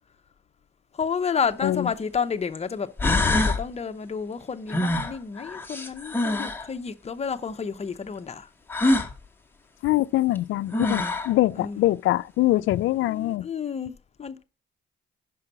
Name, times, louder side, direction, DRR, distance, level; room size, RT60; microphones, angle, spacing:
voice 1, 0.9-2.9 3.1-8.5 11.6-11.8 13.1-13.9 14.2-14.4, left 6 dB, 30° left, 0.8 m, -30 dB
sound 1, 1.5-1.6 2.6-2.7 3.0-3.6 4.7-6.7 8.7-9.1 10.4-10.5 10.7-11.3, left 2 dB, 10° left, 1.3 m, -24 dB
voice 2, 9.8-13.5, left 16 dB, 80° left, 0.4 m, -23 dB
5.7 x 5.4 x 6.7 m
cardioid pair, 90°, 20 cm